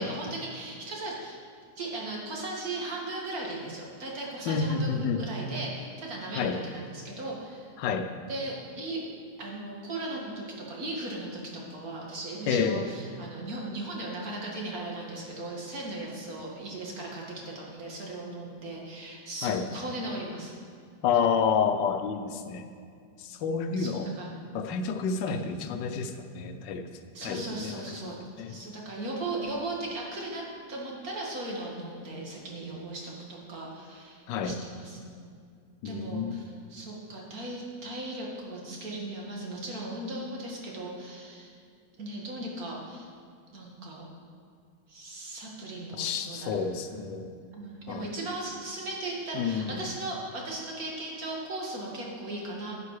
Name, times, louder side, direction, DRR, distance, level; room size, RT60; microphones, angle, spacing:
voice 1, 0.0-1.4 1.8-7.7 8.3-9.0 9.4-20.5 23.8-24.3 25.3-25.5 27.1-28.2 28.5-35.1 35.8-41.5 42.0-43.1 43.5-44.1 44.9-46.7 47.5-52.8, right 2 dB, 55° right, -2 dB, 2.3 m, -37 dB
voice 2, 4.5-5.3 6.3-6.6 7.8-8.1 12.5-12.8 19.4-19.7 21.0-22.6 23.2-24.1 24.5-26.9 27.2-28.6 34.3-34.6 35.8-36.4 46.0-47.3 47.9-48.1 49.3-49.9, left 6 dB, 80° left, 6 dB, 1.4 m, -29 dB
11.0 x 9.4 x 4.8 m, 2.3 s
omnidirectional pair, 1.9 m